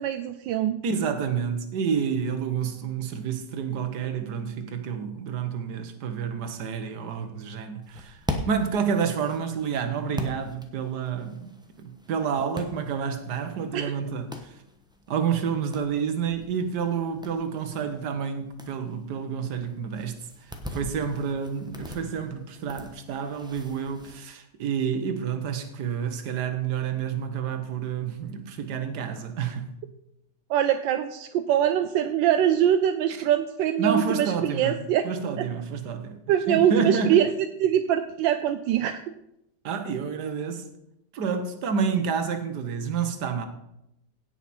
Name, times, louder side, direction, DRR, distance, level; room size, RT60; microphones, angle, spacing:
voice 1, 0.0-0.8 13.7-13.9 30.5-35.0 35.4-35.5 36.3-39.0, right 10 dB, 80° right, 1.3 m, -23 dB
voice 2, 0.8-8.2 8.5-11.5 11.8-14.5 15.1-20.2 20.7-29.7 33.8-36.1 36.5-37.2 39.6-40.7 41.1-43.5, right 6 dB, 65° right, 1.6 m, -29 dB
sound 1, 7.8-24.2, left 1 dB, 5° right, 0.5 m, -41 dB
16.5 x 5.9 x 4.3 m
omnidirectional pair, 2.0 m